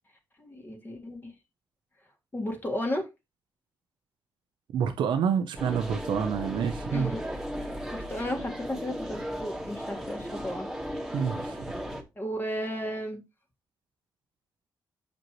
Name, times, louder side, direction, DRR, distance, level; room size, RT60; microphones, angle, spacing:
voice 1, 0.4-1.3 2.3-3.1 6.9-7.2 7.9-10.7 12.2-13.2, equal, 25° left, 1.9 m, -34 dB
voice 2, 4.7-7.2 11.1-11.7, right 7 dB, 90° right, 0.7 m, -28 dB
sound 1, 5.6-12.0, equal, 5° right, 1.7 m, -36 dB
7.5 x 5.1 x 3.1 m
cardioid pair, 80°, 8 cm